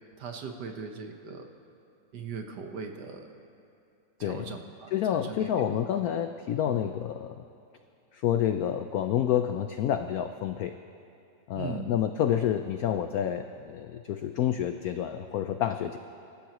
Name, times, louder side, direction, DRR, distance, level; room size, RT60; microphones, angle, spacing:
voice 1, 0.2-1.5 2.1-3.3 4.2-5.8 6.7-6.9 11.6-11.9, right 5 dB, 60° right, 4 dB, 1.6 m, -40 dB
voice 2, 4.2-4.5 4.9-7.4 8.1-10.8 11.5-16.0, left 10 dB, 80° left, 8 dB, 0.8 m, -29 dB
26.0 x 14.0 x 3.0 m, 2.6 s
omnidirectional pair, 2.1 m